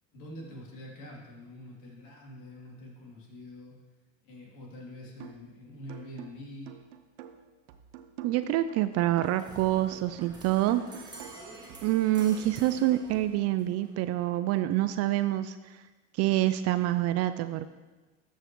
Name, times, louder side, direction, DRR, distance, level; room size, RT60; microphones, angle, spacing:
voice 1, 0.1-3.8 4.2-6.7, left 1 dB, 55° left, -3 dB, 3.1 m, -45 dB
sound 1, 5.2-5.5 5.9-9.6 9.9-13.2, right 10 dB, 70° right, 0.8 m, -48 dB
voice 2, 8.2-11.1 11.8-15.8 16.2-17.7, right 14 dB, 45° right, 12 dB, 0.4 m, -27 dB
sound 2, 9.2-14.2, right 2 dB, 10° right, 1.6 m, -48 dB
12.5 x 6.5 x 3.1 m, 1.2 s
hypercardioid pair, 85°, 38 cm